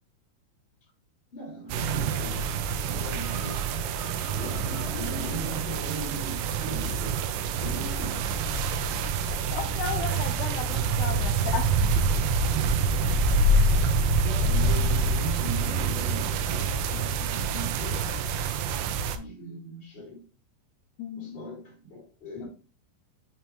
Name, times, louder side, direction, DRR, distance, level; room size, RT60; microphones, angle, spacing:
voice 1, 1.3-3.8 4.3-8.3 14.2-20.2 21.2-22.5, right 1 dB, 15° left, 2.3 m, -39 dB
sound 1, 1.7-19.2, right 3 dB, 85° right, 2.6 m, -26 dB
sound 2, 2.4-7.7, right 3 dB, 55° right, 2.4 m, -48 dB
voice 2, 9.5-11.7 13.0-13.2 21.0-21.4, left 6 dB, 80° left, 2.4 m, -34 dB
7.3 x 4.4 x 2.9 m
omnidirectional pair, 5.6 m